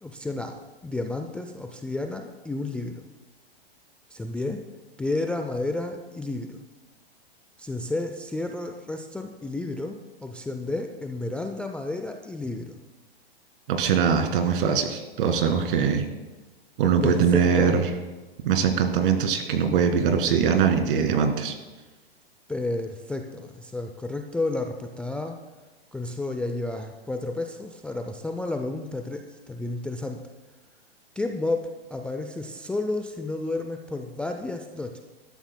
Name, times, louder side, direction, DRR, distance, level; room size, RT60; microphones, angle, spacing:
voice 1, 0.0-3.0 4.1-4.6 5.0-6.6 7.6-12.8 17.0-17.8 22.5-25.4 25.9-30.2 31.2-35.0, left 2 dB, 5° left, 4 dB, 0.4 m, -31 dB
voice 2, 13.7-16.1 16.8-17.9 18.4-21.5, right 6 dB, 60° right, 6 dB, 2.0 m, -22 dB
19.5 x 13.0 x 2.2 m, 1.2 s
hypercardioid pair, 125°, 30 cm